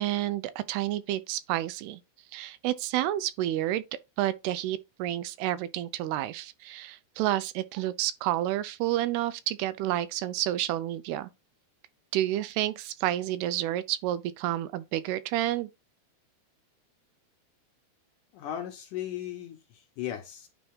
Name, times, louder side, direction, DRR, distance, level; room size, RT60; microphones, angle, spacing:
voice 1, 0.0-2.0 2.3-3.8 4.2-11.3 12.1-15.7, right 13 dB, 90° right, 2.6 m, -30 dB
voice 2, 18.3-20.5, left 11 dB, 75° left, 2.1 m, -37 dB
9.4 x 3.4 x 3.6 m
omnidirectional pair, 4.5 m